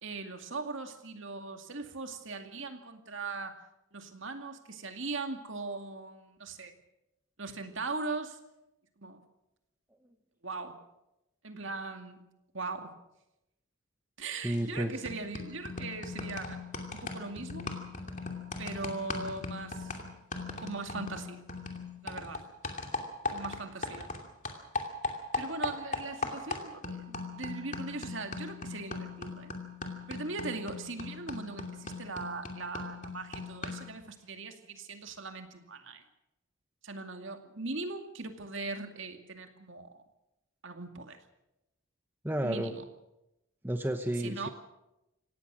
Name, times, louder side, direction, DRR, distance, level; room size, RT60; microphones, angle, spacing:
voice 1, 0.0-3.6 3.9-6.7 7.4-8.4 9.0-9.2 10.4-10.8 11.4-12.2 12.5-12.9 14.2-16.7 16.9-17.7 18.6-19.9 20.6-21.4 22.0-22.4 23.3-24.1 25.4-29.5 30.1-36.0 36.8-40.0 40.6-41.2 42.4-42.8 44.2-44.5, right 3 dB, 60° right, 6 dB, 2.3 m, -40 dB
voice 2, 14.4-14.9 42.2-42.7 43.6-44.5, right 1 dB, 10° right, 7 dB, 0.9 m, -31 dB
sound 1, 14.5-14.8 15.0-24.2 24.4-33.9, left 3 dB, 35° left, 2.7 m, -39 dB
25.5 x 17.5 x 6.3 m, 0.90 s
head